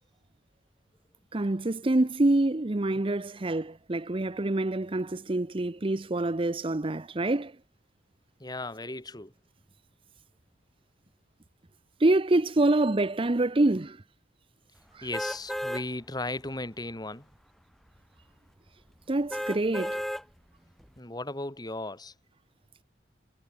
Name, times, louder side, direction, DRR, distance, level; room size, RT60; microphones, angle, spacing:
voice 1, 1.3-7.5 12.0-14.0 14.9-15.1 19.1-20.0, right 2 dB, 30° right, 0.7 m, -26 dB
voice 2, 8.4-9.3 15.0-17.3 21.0-22.1, left 2 dB, 20° left, 2.4 m, -36 dB
sound 1, 15.1-15.8 16.4-16.5 19.3-20.2 20.8-20.9, equal, ahead, 0.9 m, -33 dB
head